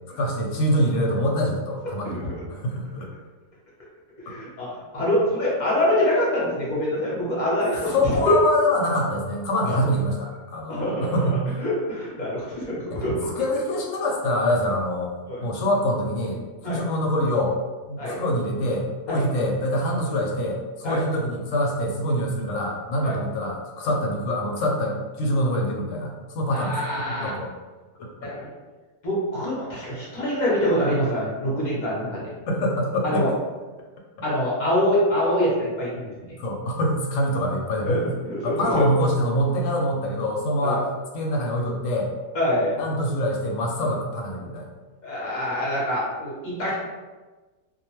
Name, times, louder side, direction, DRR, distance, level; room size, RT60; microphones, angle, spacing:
voice 1, 0.1-3.1 4.3-4.4 7.9-11.5 13.4-17.5 17.9-27.5 28.0-28.3 32.5-33.3 36.4-38.1 38.4-40.9 41.1-42.1 42.8-44.7, equal, 70° left, 0 dB, 0.9 m, -25 dB
voice 2, 4.3-4.7 4.9-8.0 8.3-8.4 9.6-9.8 10.7-11.1 11.6-13.2 15.3-15.4 16.6-16.8 18.0-18.2 19.1-19.2 20.8-21.0 23.0-23.2 26.5-27.3 28.2-28.5 29.0-32.2 33.0-33.3 34.2-36.4 37.8-38.8 40.6-40.8 42.3-42.7 45.0-46.7, left 1 dB, 40° left, -7 dB, 0.7 m, -25 dB
2.5 x 2.1 x 2.9 m, 1.3 s
omnidirectional pair, 1.5 m